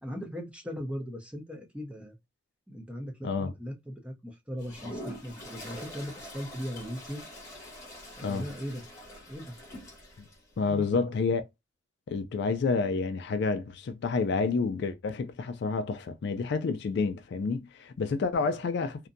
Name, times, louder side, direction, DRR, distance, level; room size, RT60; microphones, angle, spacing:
voice 1, 0.0-2.2 2.7-7.2 8.2-8.8 9.3-9.5 10.6-10.9 18.4-18.5, equal, 5° right, 0.6 m, -38 dB
Toilet flush, 4.6-10.4, left 1 dB, 15° left, 1.1 m, -45 dB
voice 2, 10.6-11.4 12.1-19.1, left 4 dB, 55° left, 0.3 m, -29 dB
2.6 x 2.1 x 2.4 m
head